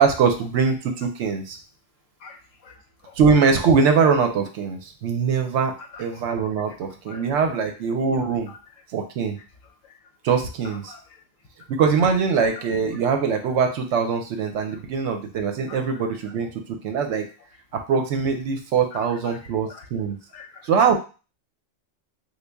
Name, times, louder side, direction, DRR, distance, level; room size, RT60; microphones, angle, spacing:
voice 1, 0.0-1.6 3.2-5.7 6.0-8.5 8.9-9.4 10.2-10.9 11.7-17.3 17.7-20.2 20.6-20.9, right 5 dB, 70° right, 5 dB, 0.9 m, -22 dB
voice 2, 2.2-3.2 5.8-6.2 6.7-6.8 7.1-7.4 8.5-8.6 9.8-9.9 10.6-11.0 12.4-12.5 14.7-14.8 15.7-15.8 19.1-19.9 20.3-20.7, left 5 dB, 85° left, 4 dB, 1.0 m, -45 dB
3.2 x 2.3 x 3.4 m, 0.34 s
omnidirectional pair, 1.3 m